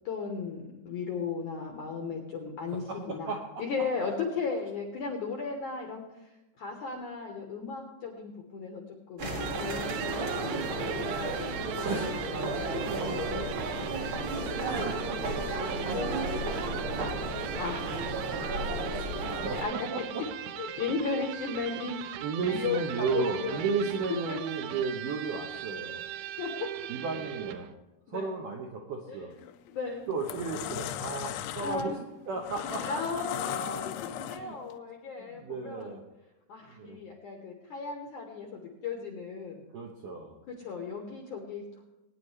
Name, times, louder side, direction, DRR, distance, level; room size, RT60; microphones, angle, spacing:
voice 1, 0.0-3.3 3.6-6.3 6.6-11.0 17.6-18.1 19.5-19.7 20.6-23.7 24.3-24.4 25.9-26.0 26.4-26.7 28.1-28.3 29.1-29.3 29.7-30.1 31.6-32.0 32.8-36.0 36.5-39.6 40.6-41.6, left 5 dB, 70° left, 1 dB, 1.9 m, -36 dB
voice 2, 2.9-3.6 11.8-13.5 14.7-16.6 17.0-17.5 18.2-18.4 18.9-20.2 22.2-26.0 26.9-27.7 28.1-29.3 30.1-32.0 32.3-33.0 34.3-34.6 35.2-36.0 36.7-37.0 39.7-40.4, right 4 dB, 75° right, 0 dB, 2.0 m, -35 dB
sound 1, 9.2-19.6, right 1 dB, 45° right, 1.8 m, -33 dB
Electric guitar, 9.4-27.7, right 11 dB, 90° right, 2.9 m, -40 dB
sound 2, 29.3-29.6 30.0-34.7, left 12 dB, 85° left, 3.0 m, -37 dB
20.0 x 9.8 x 3.3 m, 0.98 s
omnidirectional pair, 5.2 m